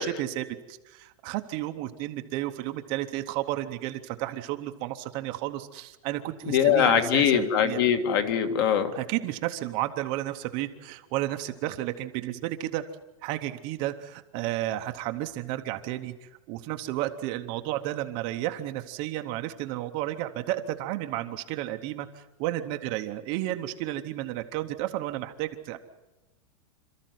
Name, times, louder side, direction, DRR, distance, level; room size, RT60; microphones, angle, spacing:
voice 1, 0.0-7.8 8.9-12.8 13.2-25.8, right 15 dB, 25° right, 7 dB, 0.9 m, -32 dB
voice 2, 6.5-8.9, left 8 dB, 40° left, 8 dB, 1.9 m, -22 dB
27.5 x 13.5 x 9.3 m, 1.0 s
supercardioid pair, 175°, 18 cm